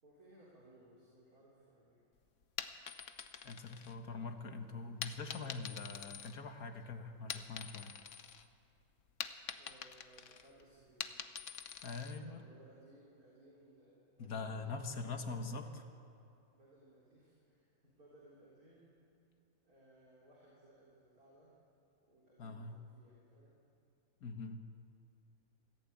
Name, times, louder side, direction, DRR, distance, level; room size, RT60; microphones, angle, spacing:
voice 1, 0.0-2.0 9.5-11.1 12.4-15.8 16.5-19.0 19.6-21.5 22.1-23.6, right 1 dB, 75° right, -6 dB, 4.2 m, -62 dB
sound 1, 2.4-4.4 5.0-6.8 7.1-8.5 8.8-12.2, left 7 dB, 60° left, 1.2 m, -46 dB
voice 2, 3.4-7.9 11.8-12.4 14.2-15.7 22.4-22.7 24.2-24.6, left 4 dB, 75° left, 6 dB, 2.0 m, -43 dB
24.0 x 15.5 x 8.7 m, 2.7 s
omnidirectional pair, 1.6 m